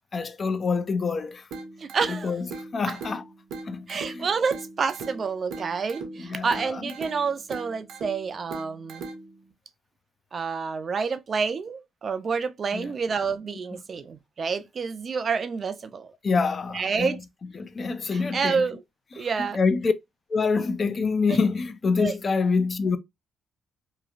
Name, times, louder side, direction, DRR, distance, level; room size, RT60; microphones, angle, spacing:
voice 1, 0.1-1.5 2.1-2.5 2.7-3.2 3.7-4.3 6.3-6.6 12.7-12.9 16.2-17.2 17.6-18.6 19.5-19.9 20.3-23.0, left 4 dB, 40° left, 0.4 m, -26 dB
sound 1, 1.5-9.5, right 3 dB, 80° right, 0.8 m, -40 dB
voice 2, 1.8-2.4 2.9-3.0 3.9-9.1 10.3-16.1 16.7-17.2 18.1-18.8 19.2-19.6 21.3-21.4 22.0-22.1, right 5 dB, 45° right, 0.4 m, -28 dB
3.0 x 2.3 x 2.4 m
cardioid pair, 90°, 0 cm